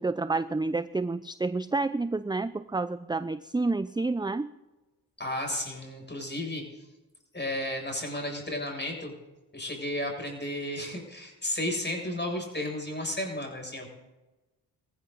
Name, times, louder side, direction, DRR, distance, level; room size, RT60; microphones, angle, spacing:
voice 1, 0.0-4.5, right 3 dB, 10° right, 14 dB, 0.6 m, -29 dB
voice 2, 5.2-6.9 7.3-9.1 9.5-13.9, left 1 dB, 25° left, 2 dB, 7.3 m, -33 dB
20.0 x 14.5 x 4.1 m, 1.1 s
supercardioid pair, 45°, 42 cm